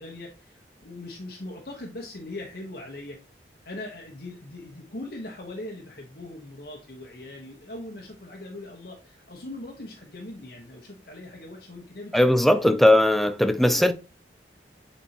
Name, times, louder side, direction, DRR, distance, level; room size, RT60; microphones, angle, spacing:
voice 1, 0.0-3.2 3.6-12.3 13.7-13.9, left 1 dB, 60° left, 1.2 m, -40 dB
voice 2, 12.1-13.9, left 1 dB, ahead, 0.4 m, -19 dB
8.4 x 4.3 x 2.9 m
head